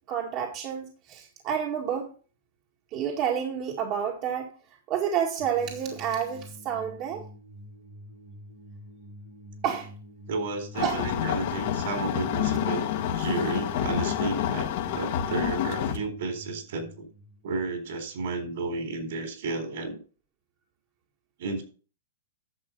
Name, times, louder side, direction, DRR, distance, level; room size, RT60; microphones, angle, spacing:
voice 1, 0.1-2.1 2.9-4.5 4.9-7.2 9.6-9.9 10.8-11.0, right 8 dB, 35° right, 0 dB, 2.0 m, -29 dB
sound 1, 5.4-18.5, equal, 85° right, 3.9 m, -47 dB
voice 2, 10.3-12.8 13.1-14.7 14.9-17.1 17.4-20.0 21.4-21.6, right 3 dB, 60° right, 6 dB, 4.1 m, -32 dB
sound 2, 10.7-16.0, left 10 dB, 50° left, 1.8 m, -28 dB
11.0 x 7.0 x 5.3 m, 0.38 s
hypercardioid pair, 145°, 0 cm